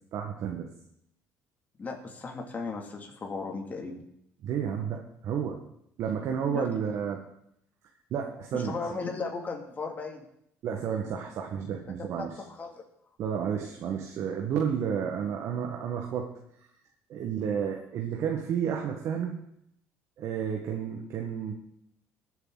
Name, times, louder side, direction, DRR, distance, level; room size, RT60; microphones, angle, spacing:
voice 1, 0.1-0.7 4.4-5.6 6.0-7.2 8.1-8.8 10.6-12.3 13.2-16.3 17.1-19.4 20.2-21.5, right 7 dB, 60° right, 2 dB, 1.6 m, -31 dB
voice 2, 1.8-3.9 6.5-6.7 8.5-10.2 12.0-12.8, left 4 dB, 30° left, 1 dB, 2.7 m, -36 dB
21.0 x 8.1 x 4.0 m, 0.74 s
cardioid pair, 110°, 5 cm